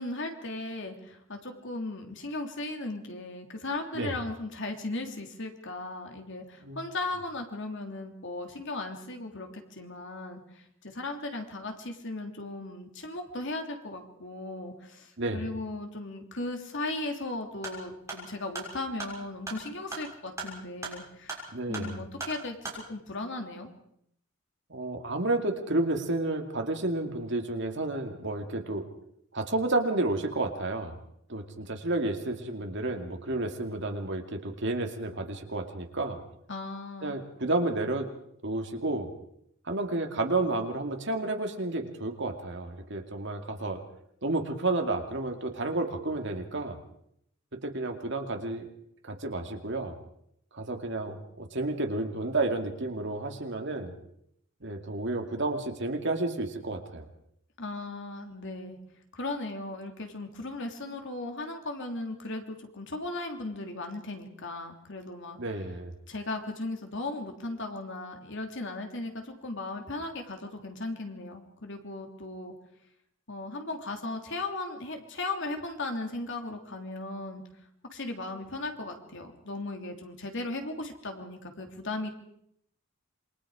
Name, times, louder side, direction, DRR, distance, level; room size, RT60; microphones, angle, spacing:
voice 1, 0.0-21.4 21.7-23.7 36.5-37.1 57.6-58.8 59.1-65.4 66.1-72.5 73.3-77.4 77.9-82.1, left 2 dB, 60° left, 4 dB, 3.1 m, -37 dB
sound 1, 17.5-22.8, right 2 dB, 15° right, 6.6 m, -41 dB
voice 2, 21.5-22.0 24.7-28.9 29.3-30.9 31.3-36.2 37.0-38.1 38.4-39.1 39.7-43.8 44.2-46.8 47.5-48.7 49.0-49.9 50.5-53.9 54.6-57.1 65.4-65.9, right 2 dB, 60° right, 4 dB, 2.5 m, -31 dB
27.5 x 22.5 x 5.0 m, 0.73 s
head